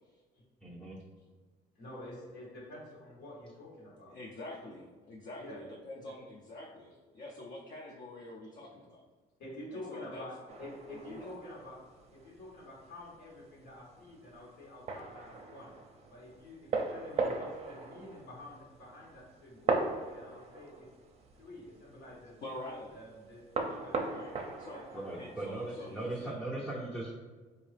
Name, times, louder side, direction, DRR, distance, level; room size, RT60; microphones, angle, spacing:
voice 1, 0.6-1.0 24.9-27.1, right 2 dB, 5° left, -6 dB, 0.6 m, -38 dB
voice 2, 1.7-4.2 4.6-4.7 5.4-5.6 5.9-6.0 8.6-8.7 9.4-10.3 10.6-11.8 12.1-15.7 16.1-19.8 20.1-20.9 21.3-22.3 22.9-24.2 24.7-25.3 25.8-25.9, left 1 dB, 90° left, -4 dB, 1.5 m, -48 dB
voice 3, 4.1-9.0 9.9-10.2 10.9-11.2 22.4-23.0 24.0-24.3 24.6-24.8 25.2-26.3, left 1 dB, 50° left, -3 dB, 0.6 m, -46 dB
sound 1, 10.5-26.3, right 4 dB, 40° right, 0.5 m, -40 dB
3.8 x 2.8 x 3.3 m, 1.4 s
cardioid pair, 110°, 17 cm